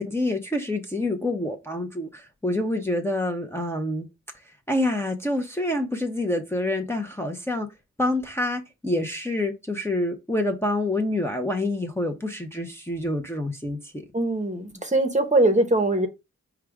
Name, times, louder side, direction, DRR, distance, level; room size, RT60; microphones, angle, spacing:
voice 1, 0.0-4.1 4.7-7.7 8.0-14.0, left 1 dB, 10° left, 0.7 m, -27 dB
voice 2, 14.1-16.1, right 2 dB, 25° right, 0.9 m, -21 dB
4.8 x 2.3 x 4.7 m
wide cardioid pair, 75°, 30 cm